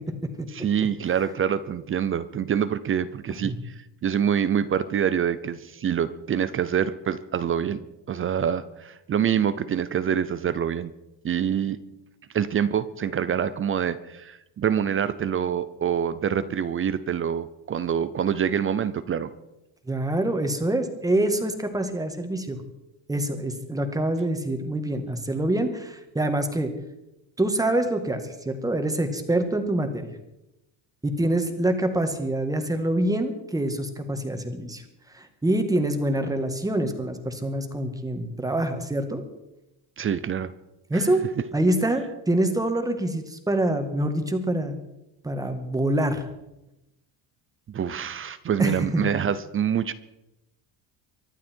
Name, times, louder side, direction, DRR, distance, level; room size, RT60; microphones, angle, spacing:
voice 1, 0.5-3.7 4.0-7.8 8.1-10.9 11.2-11.8 12.3-19.3 40.0-40.5 40.9-41.0 47.7-49.9, right 8 dB, 30° right, 15 dB, 0.6 m, -26 dB
voice 2, 19.9-22.6 23.1-26.7 27.4-30.1 31.0-34.8 35.1-39.2 40.9-41.2 41.5-44.8 45.2-46.2 48.6-49.1, right 1 dB, 10° right, 6 dB, 1.8 m, -25 dB
24.0 x 11.5 x 4.5 m, 0.91 s
cardioid pair, 150°, 46 cm